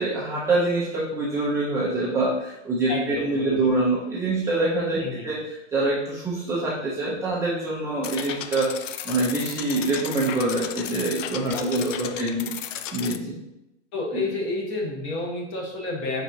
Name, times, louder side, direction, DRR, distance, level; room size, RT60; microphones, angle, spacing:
voice 1, 0.0-8.7 9.0-12.5 12.9-13.3 14.1-14.2, right 2 dB, 10° right, -8 dB, 0.4 m, -25 dB
voice 2, 2.9-3.7 5.0-5.3 11.5-12.2 13.9-16.2, left 2 dB, 35° left, 0 dB, 1.1 m, -31 dB
sound 1, 8.0-13.2, left 9 dB, 85° left, 0.5 m, -34 dB
4.7 x 4.2 x 2.6 m, 0.95 s
hypercardioid pair, 140°, 36 cm